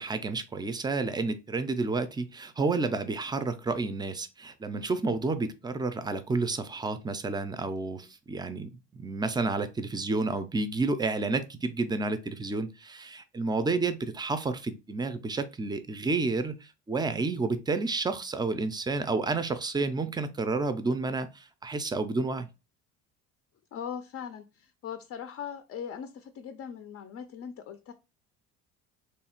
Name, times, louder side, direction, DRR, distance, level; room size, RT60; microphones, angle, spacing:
voice 1, 0.0-22.5, right 3 dB, 15° right, 0.4 m, -30 dB
voice 2, 23.7-27.9, left 8 dB, 45° left, 0.5 m, -40 dB
3.2 x 2.4 x 4.3 m
cardioid pair, 105°, 33 cm